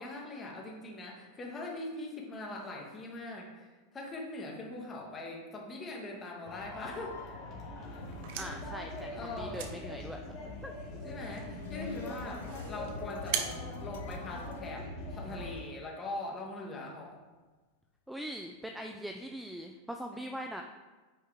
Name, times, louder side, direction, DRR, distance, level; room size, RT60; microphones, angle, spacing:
voice 1, 0.0-7.2 9.1-9.6 11.0-17.2 20.1-20.3, left 2 dB, 20° left, -1 dB, 1.5 m, -42 dB
sound 1, 6.5-15.5, left 2 dB, 40° left, 1.9 m, -42 dB
sound 2, 8.0-14.8, right 8 dB, 60° right, 0.7 m, -43 dB
voice 2, 8.3-10.7 18.1-20.6, equal, ahead, 3 dB, 0.4 m, -42 dB
sound 3, 11.3-15.6, left 5 dB, 90° left, 0.7 m, -48 dB
8.8 x 4.8 x 3.5 m, 1.3 s
supercardioid pair, 150°, 0 cm